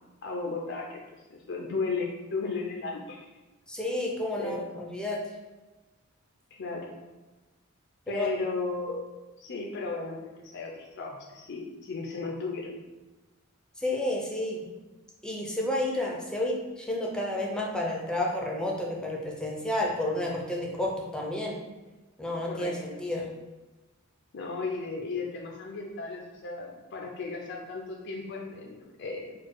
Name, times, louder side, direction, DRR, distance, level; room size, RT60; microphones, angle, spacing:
voice 1, 0.2-1.0 1.3-3.2 4.4-4.9 6.5-6.9 8.1-9.1 9.4-10.2 10.4-12.8 22.5-22.8 24.3-29.3, left 3 dB, 55° left, 0 dB, 0.5 m, -35 dB
voice 2, 3.7-5.2 8.1-8.3 13.8-14.6 15.2-21.6 22.2-23.3, left 1 dB, 5° left, -2 dB, 0.7 m, -31 dB
4.3 x 2.3 x 4.6 m, 1.2 s
head